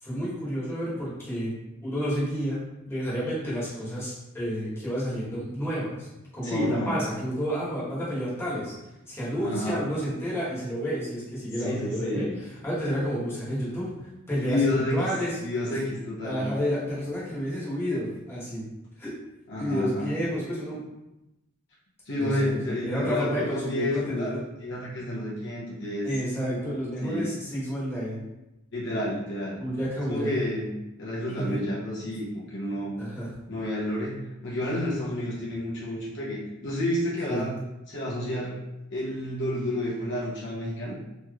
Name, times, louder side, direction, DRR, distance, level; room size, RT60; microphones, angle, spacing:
voice 1, 0.0-1.5 1.8-6.1 6.3-8.7 9.1-13.9 14.3-14.6 14.9-15.4 16.2-18.6 19.0-19.1 19.6-20.8 22.2-24.4 26.0-28.2 29.6-30.5 31.4-31.6 33.0-33.3 37.3-37.4, equal, 10° left, -9 dB, 1.1 m, -30 dB
voice 2, 6.4-7.0 9.4-9.9 11.6-12.4 14.5-15.1 15.4-16.5 19.5-20.1 22.1-24.3 24.6-26.1 27.0-27.3 28.7-29.6 30.1-33.0 33.5-37.5 37.9-38.6 38.9-41.0, left 1 dB, 60° left, -6 dB, 0.8 m, -30 dB
3.2 x 3.0 x 2.3 m, 0.94 s
head